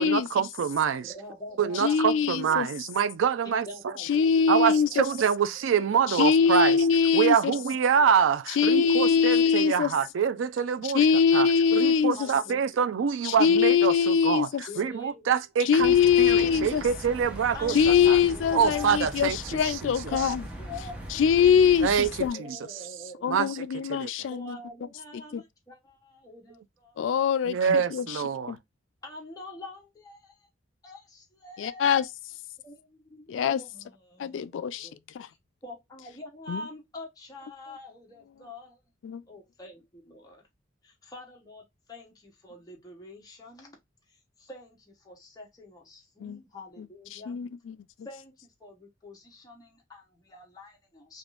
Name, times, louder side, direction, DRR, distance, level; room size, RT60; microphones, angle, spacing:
voice 1, 0.0-1.1 1.6-3.7 4.5-6.8 7.1-11.1 11.3-11.5 11.7-14.5 14.8-17.7 18.1-18.2 18.5-19.4 19.6-20.2 21.8-22.6 23.3-24.1 27.5-28.6, right 7 dB, 80° right, 0.4 m, -26 dB
voice 2, 1.0-2.6 3.4-5.0 7.5-7.6 12.1-12.8 14.7-15.3 17.5-19.0 20.1-21.5 22.3-23.4 24.3-27.0 29.0-30.5 30.8-32.1 32.6-35.0 35.3-35.4 35.6-38.8 39.3-40.4 40.8-43.7 44.1-47.3 48.0-51.2, left 2 dB, 20° left, 1.0 m, -45 dB
voice 3, 1.7-2.7 4.0-5.1 6.1-7.5 8.6-9.9 10.8-12.3 13.2-14.6 15.6-16.8 17.7-20.4 21.1-21.9 22.2-22.4 23.2-24.6 25.3-25.4 27.0-28.2 28.5-28.6 31.6-32.1 33.3-33.6 34.2-34.9 35.1-35.3 36.5-36.6 39.0-39.2 46.2-46.4 46.8-46.9 47.1-47.8, left 7 dB, 70° left, 0.3 m, -23 dB
sound 1, 15.8-22.3, right 1 dB, 5° right, 0.8 m, -40 dB
3.5 x 2.5 x 2.4 m
head